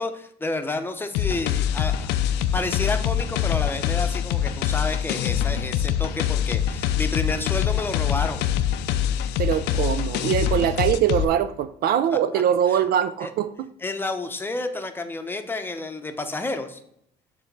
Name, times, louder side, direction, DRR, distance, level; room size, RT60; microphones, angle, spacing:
voice 1, 0.0-2.1 2.5-8.4 12.3-12.4 12.7-12.8 13.2-13.3 13.8-16.8, left 2 dB, 10° left, 6 dB, 0.7 m, -30 dB
sound 1, 1.1-11.2, left 10 dB, 90° left, 0.5 m, -24 dB
voice 2, 9.4-13.7, right 9 dB, 65° right, 11 dB, 0.4 m, -22 dB
7.0 x 3.4 x 5.9 m, 0.73 s
cardioid pair, 110°, 17 cm